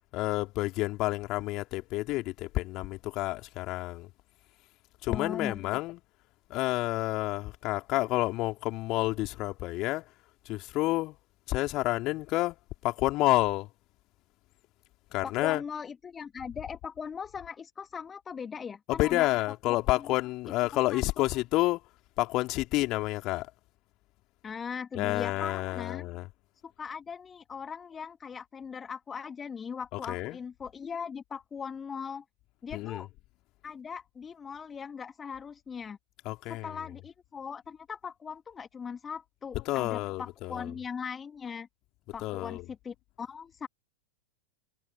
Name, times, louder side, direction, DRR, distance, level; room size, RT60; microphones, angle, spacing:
voice 1, 0.1-4.1 5.0-6.0 6.5-10.1 10.4-11.2 11.5-12.6 12.8-13.7 15.1-15.6 18.9-21.8 22.2-23.5 24.9-26.3 29.9-30.4 32.7-33.0 36.2-36.8 39.6-40.7 42.2-42.6, left 19 dB, 40° left, 2.9 m, -29 dB
voice 2, 5.1-5.6 15.2-20.1 20.9-21.3 24.4-26.1 26.6-32.3 32.6-33.1 33.6-36.0 36.5-41.7 42.1-43.7, left 6 dB, 20° left, 2.0 m, -40 dB
figure-of-eight pair, 90°, 0 cm